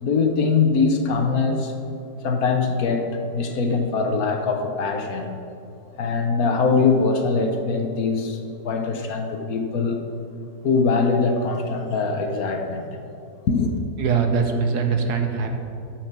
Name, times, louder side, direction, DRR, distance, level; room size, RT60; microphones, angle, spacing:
voice 1, 0.0-1.7 2.2-5.4 6.0-10.0 10.6-12.9 13.5-13.7, left 4 dB, 60° left, 4 dB, 1.3 m, -22 dB
voice 2, 14.0-15.6, right 5 dB, 70° right, 5 dB, 1.5 m, -22 dB
11.5 x 5.9 x 7.3 m, 2.7 s
omnidirectional pair, 1.8 m